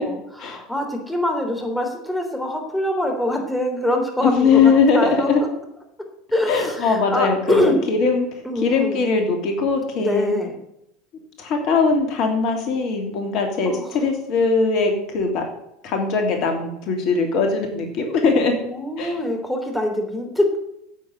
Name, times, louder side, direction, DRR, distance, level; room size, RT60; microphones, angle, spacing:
voice 1, 0.0-5.5 6.3-7.8 8.4-9.0 10.0-10.6 13.6-14.0 18.6-20.6, left 1 dB, 5° left, 2 dB, 3.3 m, -24 dB
voice 2, 4.2-5.4 6.5-8.3 8.6-10.3 11.4-15.4 15.8-18.6 19.0-19.2, left 4 dB, 50° left, 3 dB, 3.0 m, -20 dB
9.1 x 8.8 x 9.0 m, 0.81 s
hypercardioid pair, 80°, 0 cm